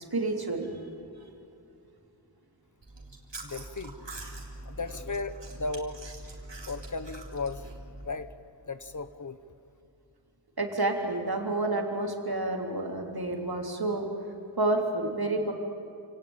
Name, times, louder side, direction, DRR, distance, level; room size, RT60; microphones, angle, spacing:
voice 1, 0.1-0.9 1.2-1.3 10.6-14.1 14.6-15.5, right 2 dB, 55° right, 2 dB, 3.3 m, -29 dB
Chewing mastication, 2.8-8.1, right 2 dB, 70° right, 3.6 m, -43 dB
voice 2, 3.4-4.1 4.6-6.0 6.7-7.7 8.0-8.3 8.6-9.4, left 3 dB, 45° left, 12 dB, 1.2 m, -36 dB
28.0 x 18.0 x 8.9 m, 2.7 s
wide cardioid pair, 50°, 44 cm